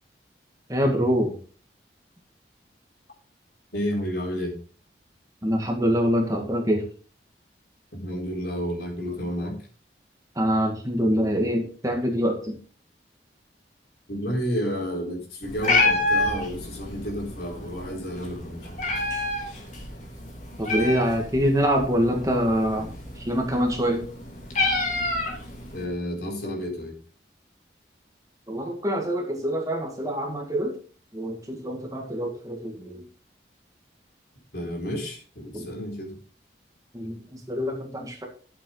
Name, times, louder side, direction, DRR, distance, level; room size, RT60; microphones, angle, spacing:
voice 1, 0.7-1.4 5.4-6.8 10.4-12.6 20.6-22.9 23.2-24.0 28.5-30.7 31.1-33.0 35.5-35.7 36.9-38.3, equal, 20° right, 2 dB, 1.9 m, -25 dB
voice 2, 3.7-4.5 7.9-9.5 14.1-18.9 25.7-26.9 34.5-36.1, equal, 60° left, -1 dB, 4.2 m, -31 dB
Meow, 15.4-25.8, left 2 dB, 40° left, 3.0 m, -29 dB
12.5 x 7.7 x 3.9 m, 0.40 s
head